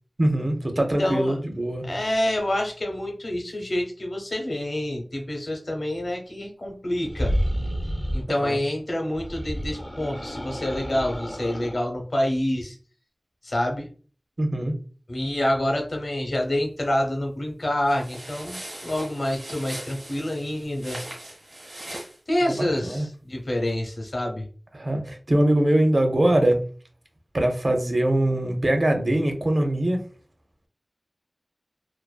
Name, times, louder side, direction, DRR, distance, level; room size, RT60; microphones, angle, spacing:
voice 1, 0.2-1.9 8.4-8.6 14.4-14.7 22.5-23.1 24.7-26.6 27.3-30.0, right 1 dB, 55° right, 4 dB, 0.5 m, -22 dB
voice 2, 0.8-1.4 1.8-7.3 8.1-12.7 13.4-13.9 15.1-21.0 22.3-24.5, left 1 dB, 65° left, 2 dB, 0.8 m, -27 dB
sound 1, 7.0-8.3 9.1-11.8, equal, 20° left, 0.4 m, -29 dB
sound 2, 17.9-22.2, right 1 dB, 75° right, 1.1 m, -40 dB
2.5 x 2.3 x 2.2 m, 0.39 s
wide cardioid pair, 50°, 0 cm